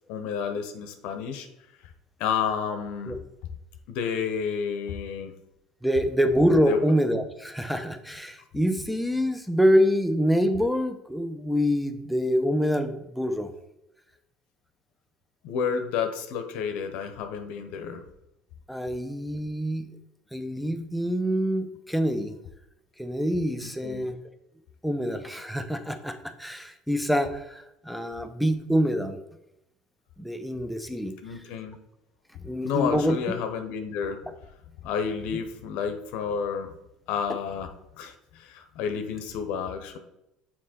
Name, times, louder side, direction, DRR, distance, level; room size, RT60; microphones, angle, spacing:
voice 1, 0.1-1.5 2.2-3.1 3.9-5.3 6.7-6.8 15.4-18.0 23.6-24.0 31.2-31.8 32.6-34.2 34.8-36.7 37.1-37.7 38.0-40.0, left 7 dB, 70° left, 7 dB, 0.9 m, -30 dB
voice 2, 5.8-13.5 18.7-19.9 20.3-22.4 23.0-24.2 24.8-29.2 30.2-31.1 32.4-33.1, equal, ahead, 7 dB, 0.8 m, -25 dB
6.4 x 4.3 x 4.3 m, 0.87 s
hypercardioid pair, 75°, 2 cm